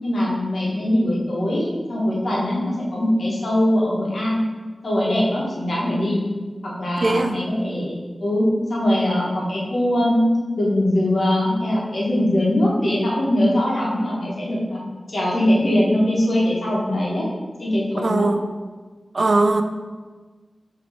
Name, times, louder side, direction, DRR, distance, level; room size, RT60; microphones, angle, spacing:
voice 1, 0.0-4.4 4.8-6.2 6.6-7.9 8.2-10.2 10.5-14.8 15.1-17.3 17.6-18.3, left 1 dB, 70° left, -5 dB, 1.2 m, -21 dB
voice 2, 7.0-7.4 18.0-18.5 19.1-19.6, right 2 dB, 60° right, 7 dB, 0.4 m, -19 dB
4.4 x 3.0 x 4.0 m, 1.3 s
cardioid pair, 45°, 0 cm